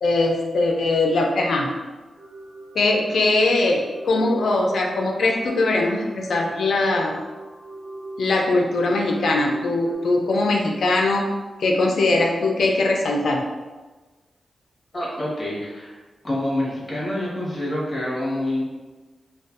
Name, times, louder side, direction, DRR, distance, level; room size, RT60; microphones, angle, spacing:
voice 1, 0.0-1.7 2.7-7.2 8.2-11.3 11.6-13.4, left 2 dB, 80° left, 1 dB, 0.3 m, -21 dB
sound 1, 2.2-9.9, right 2 dB, ahead, 0.7 m, -39 dB
voice 2, 14.9-16.0 16.2-18.6, left 1 dB, 35° left, -7 dB, 1.0 m, -27 dB
2.4 x 2.2 x 2.4 m, 1.2 s
cardioid pair, 90°, 0 cm